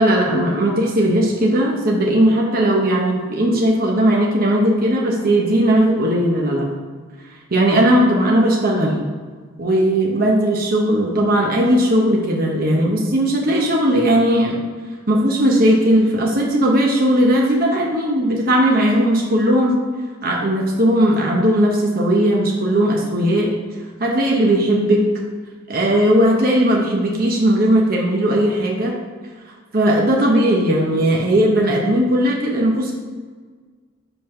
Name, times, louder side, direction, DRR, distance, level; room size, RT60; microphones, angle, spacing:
voice 1, 0.0-6.7 7.5-9.0 9.6-14.6 15.1-19.8 20.2-23.5 24.0-25.1 25.7-29.0 29.7-32.9, right 1 dB, 45° right, -2 dB, 1.0 m, -17 dB
5.5 x 5.4 x 5.8 m, 1.5 s
head